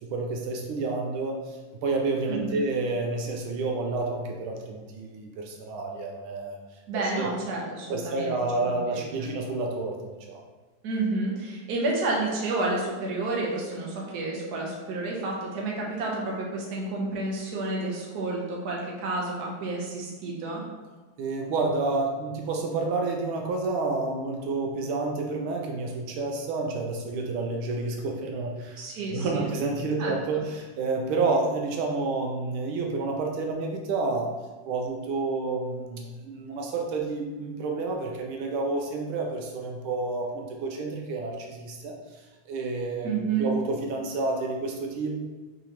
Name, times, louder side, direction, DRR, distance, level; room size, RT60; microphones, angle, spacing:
voice 1, 0.0-6.6 7.2-7.3 7.9-10.4 21.2-28.8 29.1-34.3 34.7-42.0 42.5-45.2, right 3 dB, 85° right, 1 dB, 1.4 m, -29 dB
voice 2, 2.3-2.6 6.9-9.3 10.8-20.6 28.8-29.5 30.0-30.1 43.0-43.5, right 3 dB, 55° right, -2 dB, 1.3 m, -30 dB
4.9 x 3.8 x 2.9 m, 1.3 s
omnidirectional pair, 2.2 m